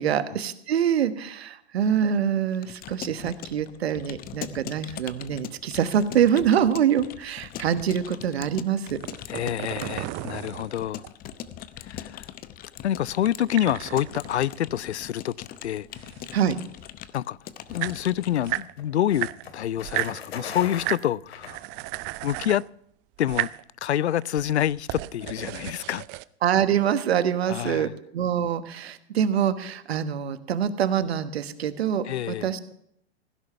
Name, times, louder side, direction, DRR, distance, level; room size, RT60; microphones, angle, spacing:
voice 1, 0.0-9.0 16.3-16.6 26.4-32.7, right 9 dB, 70° right, 1.3 m, -25 dB
Keyboard (musical) / Computer keyboard, 2.5-18.6, left 11 dB, 25° left, 0.8 m, -41 dB
sound 1, 8.9-11.3 13.2-15.3 15.5-16.8 17.4-17.5 17.6-18.7 19.1-20.2 20.7-21.1 21.4-22.7 23.2-23.6 24.1-26.2, right 20 dB, 30° right, 0.5 m, -34 dB
voice 2, 9.3-11.0 11.8-12.3 12.8-15.9 17.1-17.4 17.7-21.6 22.2-22.7 23.2-23.5 23.8-26.0 27.5-27.9 32.1-32.5, left 11 dB, 85° left, 0.5 m, -27 dB
sound 2, 17.7-22.1, left 6 dB, 65° left, 2.5 m, -40 dB
16.0 x 10.5 x 5.7 m
hypercardioid pair, 110°, 32 cm